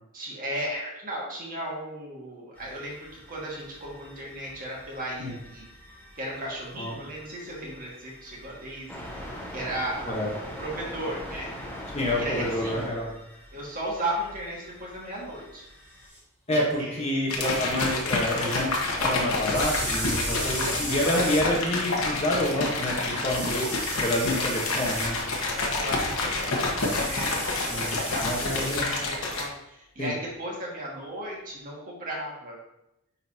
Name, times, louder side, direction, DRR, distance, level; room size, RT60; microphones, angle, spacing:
voice 1, 0.1-5.7 6.2-10.2 10.6-11.5 12.1-12.9 13.5-15.7 16.5-17.0 25.5-32.6, right 1 dB, 40° right, -3 dB, 1.7 m, -36 dB
sound 1, 2.5-16.1, equal, 10° left, 1.5 m, -43 dB
voice 2, 11.9-13.1 16.5-18.7 19.0-23.7 24.0-25.2 27.7-28.9 30.0-30.1, left 1 dB, 30° left, -2 dB, 1.2 m, -28 dB
sound 2, 16.1-16.2 19.5-21.4 23.3-25.1 26.8-28.8, equal, 5° right, 2.2 m, -34 dB
sound 3, 17.3-29.4, left 2 dB, 65° left, 1.2 m, -28 dB
9.7 x 3.9 x 2.8 m, 0.86 s
head